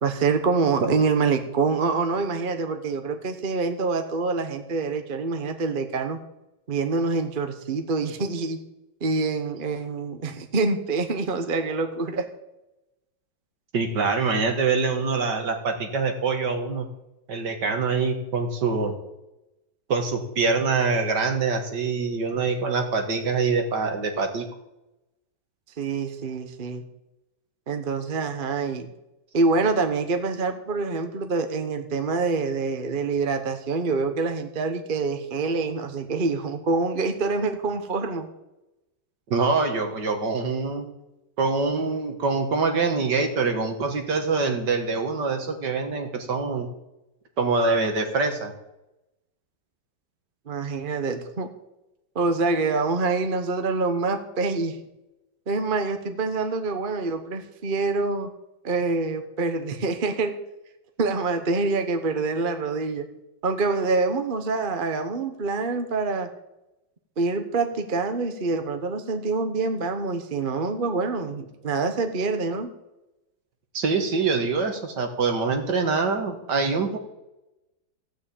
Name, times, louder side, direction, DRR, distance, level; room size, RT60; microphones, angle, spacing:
voice 1, 0.0-6.2 6.7-8.6 9.0-12.3 25.8-26.8 27.7-28.9 29.3-38.3 50.5-51.5 52.1-54.8 55.5-58.3 58.6-60.3 61.0-63.1 63.4-66.3 67.2-72.7, right 4 dB, 35° right, 7 dB, 1.0 m, -26 dB
voice 2, 13.7-16.9 17.3-18.9 19.9-24.5 39.3-40.9 41.4-46.7 47.4-48.5 73.7-77.0, right 4 dB, 60° right, 5 dB, 2.2 m, -24 dB
15.0 x 6.3 x 8.5 m, 0.94 s
omnidirectional pair, 2.2 m